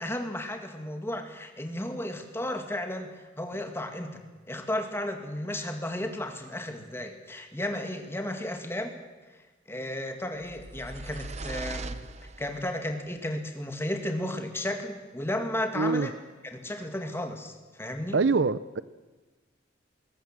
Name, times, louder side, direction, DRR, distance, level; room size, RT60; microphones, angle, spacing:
voice 1, 0.0-4.2 4.5-9.0 9.7-12.0 12.4-16.1 16.4-18.2, left 1 dB, 15° left, 2.1 m, -34 dB
sound 1, 10.4-12.8, right 3 dB, 35° right, 0.8 m, -39 dB
voice 2, 15.7-16.1 18.1-18.8, right 4 dB, 65° right, 0.6 m, -24 dB
21.0 x 19.0 x 7.5 m
head